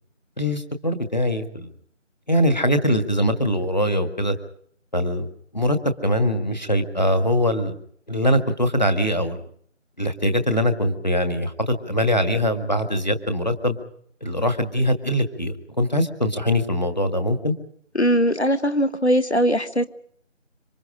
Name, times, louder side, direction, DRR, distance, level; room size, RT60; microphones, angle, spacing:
voice 1, 0.4-1.7 2.3-4.4 4.9-5.3 5.5-5.8 6.0-7.8 8.1-9.4 10.0-13.8 14.2-17.5, equal, 35° left, 7 dB, 1.9 m, -22 dB
voice 2, 17.9-19.9, equal, 60° left, 11 dB, 1.5 m, -20 dB
26.5 x 25.0 x 5.0 m, 0.65 s
figure-of-eight pair, 175°, 38 cm